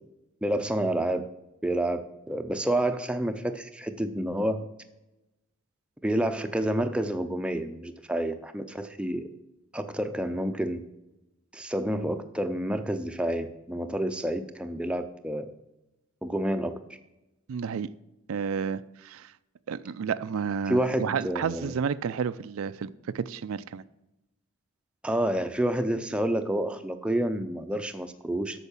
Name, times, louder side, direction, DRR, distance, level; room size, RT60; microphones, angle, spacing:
voice 1, 0.4-1.3 1.6-4.7 6.0-9.2 9.7-10.8 11.5-15.5 16.2-16.8 20.7-21.7 25.0-28.6, right 1 dB, 5° right, 7 dB, 0.5 m, -29 dB
voice 2, 17.5-17.9 18.3-19.3 19.7-23.8, right 6 dB, 75° right, 15 dB, 0.4 m, -31 dB
8.2 x 6.3 x 7.2 m, 0.98 s
head